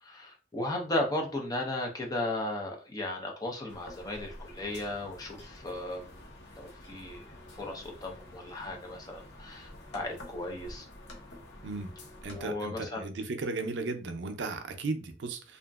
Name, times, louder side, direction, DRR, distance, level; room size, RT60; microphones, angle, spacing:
voice 1, 0.0-6.2 6.6-7.2 7.5-10.9 12.3-13.0, left 1 dB, 20° left, 0.7 m, -35 dB
sound 1, 3.7-12.4, left 1 dB, 85° left, 0.9 m, -49 dB
voice 2, 12.2-15.6, right 3 dB, 85° right, 0.5 m, -35 dB
2.8 x 2.5 x 2.3 m
head